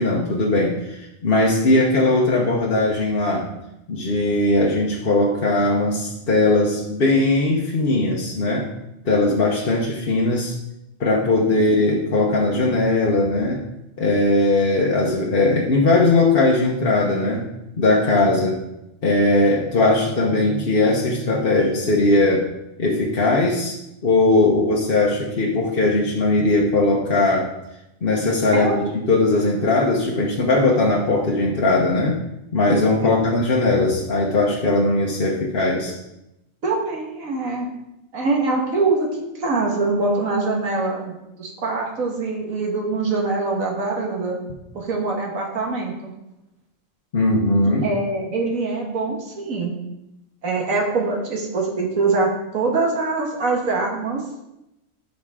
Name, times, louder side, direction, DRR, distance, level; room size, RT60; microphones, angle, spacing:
voice 1, 0.0-3.5 3.9-8.7 9.0-10.5 11.0-13.6 14.0-17.4 17.8-18.6 19.0-22.5 22.8-23.8 24.0-27.5 28.0-32.2 32.5-35.9 47.1-47.8, left 2 dB, 45° left, -3 dB, 1.1 m, -19 dB
voice 2, 36.6-37.7 38.1-44.4 44.7-45.9 47.6-49.7 50.4-54.2, right 3 dB, 75° right, 0 dB, 2.0 m, -23 dB
12.0 x 5.1 x 3.7 m, 0.89 s
omnidirectional pair, 1.4 m